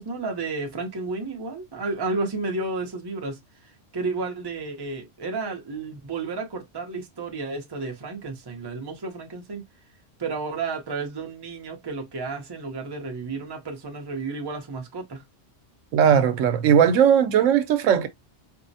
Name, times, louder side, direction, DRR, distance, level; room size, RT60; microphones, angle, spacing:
voice 1, 0.0-9.6 10.2-15.2, right 3 dB, 25° right, 0.6 m, -32 dB
voice 2, 15.9-18.1, right 8 dB, 85° right, 1.0 m, -18 dB
4.4 x 2.0 x 2.7 m
omnidirectional pair, 1.3 m